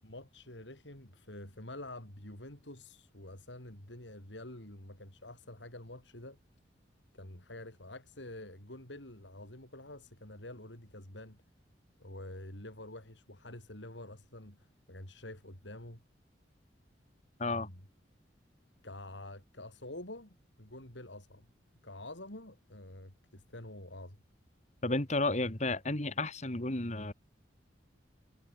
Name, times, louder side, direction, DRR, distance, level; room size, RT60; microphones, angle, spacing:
voice 1, 0.0-6.4 7.1-11.4 12.0-16.0 17.5-17.8 18.8-21.5 21.8-24.2, left 1 dB, 75° left, 5.9 m, -47 dB
voice 2, 24.8-27.1, left 2 dB, 40° left, 2.4 m, -32 dB
head